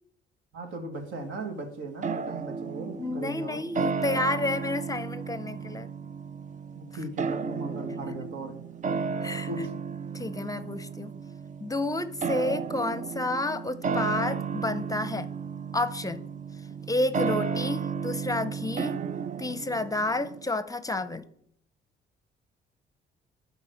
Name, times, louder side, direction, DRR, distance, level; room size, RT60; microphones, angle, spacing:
voice 1, 0.5-3.7 6.8-8.6 9.5-9.7, right 2 dB, 80° right, 5 dB, 1.8 m, -37 dB
sound 1, 2.0-20.5, right 5 dB, 40° right, 0.4 m, -33 dB
voice 2, 3.0-5.9 9.2-9.5 10.1-11.1 11.6-15.3 15.7-16.2 16.9-19.0 19.4-21.2, left 2 dB, 15° left, 13 dB, 0.6 m, -30 dB
11.0 x 3.9 x 6.3 m, 0.68 s
cardioid pair, 90°, 20 cm